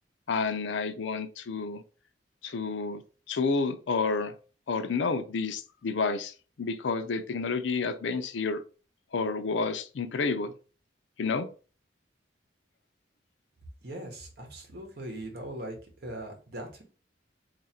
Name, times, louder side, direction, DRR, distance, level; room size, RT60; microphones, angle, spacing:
voice 1, 0.3-1.8 2.4-3.0 3.3-4.3 4.7-6.3 6.6-8.6 9.1-10.5 11.2-11.5, left 4 dB, 80° left, 10 dB, 0.5 m, -30 dB
voice 2, 13.8-16.8, right 1 dB, 60° right, 2 dB, 1.1 m, -40 dB
3.1 x 2.5 x 4.3 m, 0.37 s
head